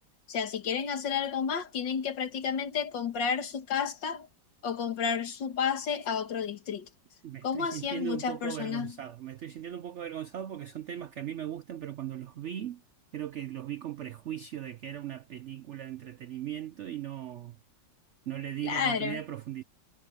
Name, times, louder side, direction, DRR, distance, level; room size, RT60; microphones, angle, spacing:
voice 1, 0.3-4.3 4.6-6.9 7.4-8.9 18.6-19.2, left 7 dB, 80° left, 2.3 m, -31 dB
voice 2, 7.2-12.8 13.1-17.6 18.3-19.6, right 11 dB, 85° right, 0.6 m, -38 dB
omnidirectional pair, 1.9 m